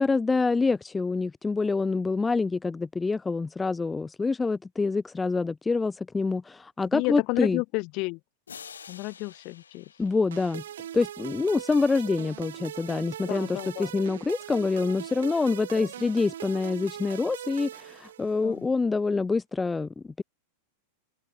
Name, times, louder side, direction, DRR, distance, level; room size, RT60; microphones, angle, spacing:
voice 1, 0.0-7.6 10.0-10.6 10.9-19.9 20.2-20.3, left 4 dB, 10° left, 0.3 m, -26 dB
voice 2, 6.9-8.2 8.9-9.8 13.3-13.9 15.8-15.9 18.4-18.7, left 28 dB, 45° left, 1.2 m, -31 dB
sound 1, 8.5-11.1, left 7 dB, 70° left, 1.0 m, -48 dB
sound 2, 10.3-18.6, right 11 dB, 60° right, 1.1 m, -40 dB
open air
figure-of-eight pair, 90°, 0 cm